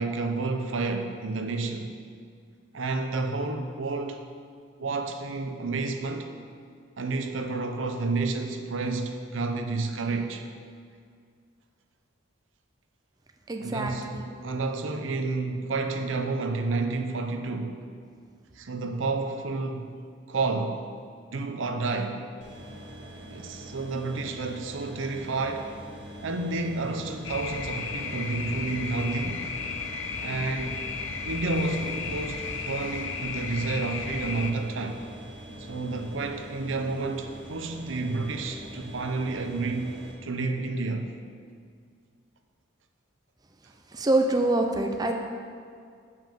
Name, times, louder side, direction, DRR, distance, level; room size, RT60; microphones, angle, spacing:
voice 1, 0.0-1.9 2.7-4.2 4.8-6.3 7.0-10.5 13.6-17.9 18.5-20.9 21.3-22.2 23.3-25.7 26.2-29.5 30.2-30.8 31.2-35.0 35.6-41.1, right 3 dB, 75° right, 5 dB, 0.7 m, -30 dB
voice 2, 13.5-14.3 43.9-45.1, right 2 dB, 20° right, 3 dB, 0.5 m, -25 dB
sound 1, 22.4-40.1, right 1 dB, 60° right, 1.9 m, -44 dB
sound 2, 27.2-34.5, left 5 dB, 75° left, 0.6 m, -34 dB
7.3 x 5.6 x 7.5 m, 2.2 s
head